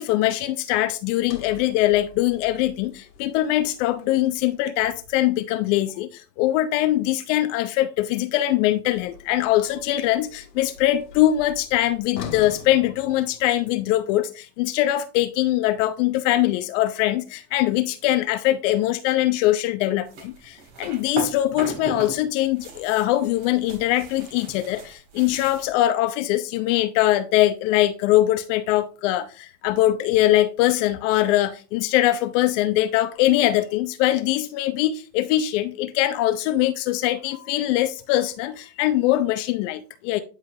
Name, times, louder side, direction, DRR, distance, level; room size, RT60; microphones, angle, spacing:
voice 1, 0.0-40.2, left 14 dB, 50° left, 0.6 m, -22 dB
Sliding door, 1.1-5.4 8.9-13.8, left 6 dB, 85° left, 1.7 m, -43 dB
sound 1, 20.1-22.2 22.4-25.7, right 3 dB, 50° right, 3.1 m, -36 dB
9.7 x 4.9 x 2.7 m
hypercardioid pair, 100°, 50 cm